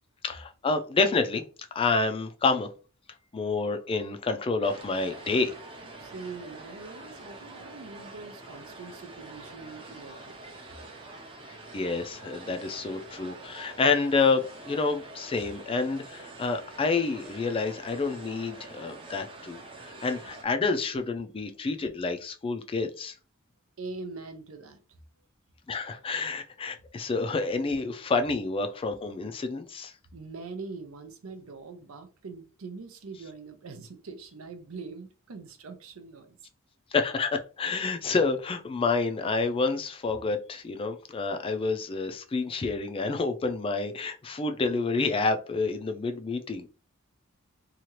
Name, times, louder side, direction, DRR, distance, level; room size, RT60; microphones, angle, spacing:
voice 1, 0.2-1.4 1.7-2.7 3.3-5.5 11.5-19.6 20.0-23.1 25.7-29.9 36.9-46.7, left 4 dB, 25° left, 0.3 m, -28 dB
sound 1, 4.6-20.4, right 2 dB, 25° right, 0.6 m, -46 dB
voice 2, 6.0-10.4 23.8-24.8 30.1-36.4, right 4 dB, 85° right, 0.6 m, -43 dB
2.8 x 2.3 x 3.0 m
head